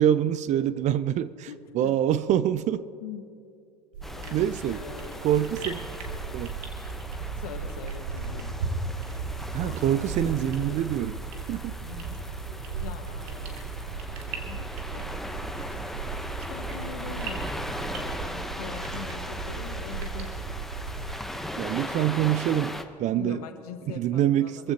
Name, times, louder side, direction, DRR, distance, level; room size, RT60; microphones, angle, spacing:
voice 1, 0.0-1.5 1.7-2.9 4.3-4.8 5.2-5.8 6.3-6.5 9.5-11.2 11.5-11.7 21.6-22.7 23.0-23.4 24.0-24.7, right 11 dB, 35° right, 0.5 m, -25 dB
voice 2, 1.5-2.0 3.0-3.2 4.1-5.4 7.4-8.6 9.6-11.0 11.8-12.2 12.6-13.7 14.1-15.1 16.5-20.4 23.1-24.7, left 8 dB, 65° left, 1.7 m, -43 dB
sound 1, 3.9-21.2, right 4 dB, 70° right, 2.5 m, -36 dB
sound 2, 4.0-22.8, left 1 dB, ahead, 1.0 m, -39 dB
25.5 x 15.5 x 2.9 m
hypercardioid pair, 90°, 21 cm